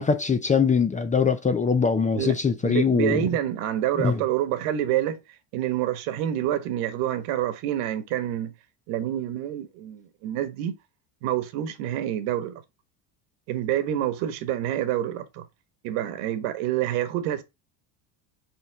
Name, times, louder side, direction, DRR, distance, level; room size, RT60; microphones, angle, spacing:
voice 1, 0.0-3.3 4.0-4.2, left 5 dB, 15° left, 0.4 m, -22 dB
voice 2, 2.6-5.2 5.5-8.5 8.9-10.8 11.2-12.5 13.5-15.5 15.8-17.4, right 12 dB, 75° right, 1.5 m, -27 dB
5.6 x 5.2 x 3.4 m
cardioid pair, 140°, 50 cm